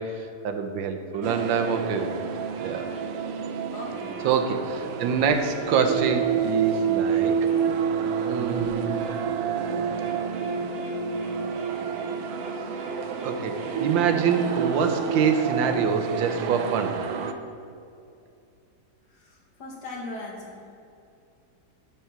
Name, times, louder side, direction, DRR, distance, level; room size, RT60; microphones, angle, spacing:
voice 1, 0.0-2.1 2.6-2.9 4.2-7.5 8.3-9.1 13.2-16.9, right 6 dB, 80° right, 7 dB, 1.5 m, -26 dB
sound 1, 1.1-8.4 8.7-16.7, right 3 dB, 40° right, 1.6 m, -42 dB
sound 2, 1.2-17.3, right 7 dB, 65° right, 1.0 m, -28 dB
voice 2, 3.7-4.2 19.2-20.6, left 2 dB, 60° left, -2 dB, 2.2 m, -38 dB
12.5 x 4.4 x 5.9 m, 2.5 s
omnidirectional pair, 2.0 m